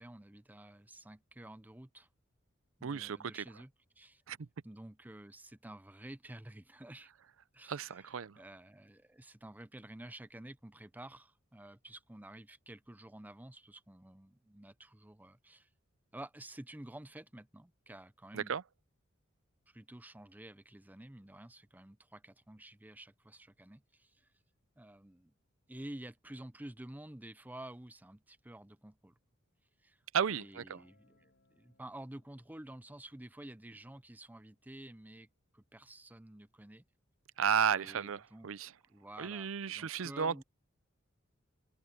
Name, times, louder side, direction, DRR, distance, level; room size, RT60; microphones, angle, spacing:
voice 1, 0.0-2.1 2.8-4.2 4.6-7.1 7.5-15.7 16.1-18.6 19.7-24.3 24.8-25.3 25.7-29.1 29.8-30.0 30.3-36.8 37.7-38.5 38.8-40.4, right 1 dB, 10° right, 0.6 m, -51 dB
voice 2, 2.8-3.2 4.3-4.4 7.7-8.4 18.3-18.6 30.1-30.8 37.4-38.7 39.2-40.4, right 7 dB, 80° right, 0.5 m, -33 dB
Guitar, 30.5-36.3, left 2 dB, 60° left, 7.6 m, -76 dB
head